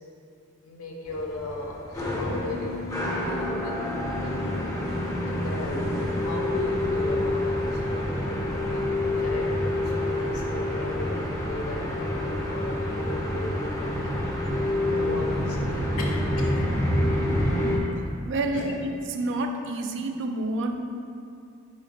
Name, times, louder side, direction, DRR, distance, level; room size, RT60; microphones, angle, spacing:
voice 1, 0.6-1.8 2.1-3.9 4.2-4.5 5.2-8.4 8.7-12.2 12.5-14.2 14.8-16.7 17.4-17.8 18.5-18.7, left 2 dB, 65° left, 0 dB, 0.5 m, -37 dB
sound 1, 1.0-17.8, left 1 dB, 15° left, 0.5 m, -27 dB
voice 2, 18.2-18.7 19.2-20.7, right 2 dB, 55° right, 5 dB, 0.3 m, -28 dB
4.2 x 2.5 x 4.0 m, 2.5 s
head